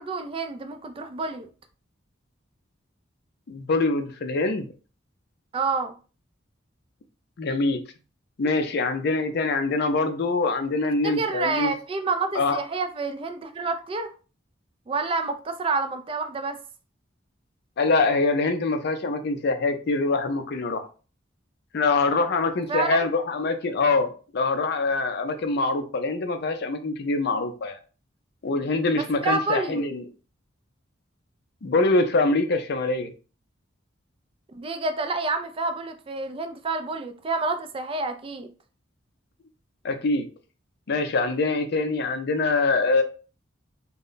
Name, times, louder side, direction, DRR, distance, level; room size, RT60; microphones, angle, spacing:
voice 1, 0.0-1.5 5.5-5.9 11.0-14.1 14.9-16.6 22.7-23.0 28.9-29.8 34.5-38.5 41.2-41.4, right 3 dB, 30° right, 0.3 m, -28 dB
voice 2, 3.5-4.7 7.4-7.8 8.4-11.7 12.3-12.6 17.8-20.8 21.7-27.8 28.4-30.1 31.6-33.1 39.8-40.3 40.9-43.0, left 3 dB, 55° left, 0.4 m, -24 dB
2.1 x 2.0 x 3.8 m
head